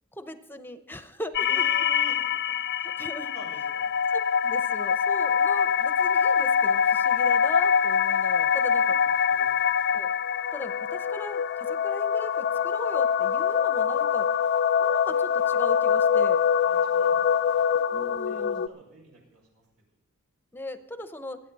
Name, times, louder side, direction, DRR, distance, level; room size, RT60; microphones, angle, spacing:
voice 1, 0.1-1.6 2.8-3.3 4.1-8.8 9.9-10.1 10.5-14.3 14.8-16.4 17.9-18.7 20.5-21.4, left 1 dB, 10° left, 9 dB, 0.7 m, -39 dB
sound 1, 1.3-18.7, left 7 dB, 50° left, 0.4 m, -24 dB
voice 2, 1.4-2.8 3.2-4.0 8.5-8.8 9.2-9.8 16.6-17.6 17.9-19.7, right 1 dB, 90° right, -1 dB, 6.8 m, -47 dB
26.5 x 9.1 x 4.1 m, 0.86 s
head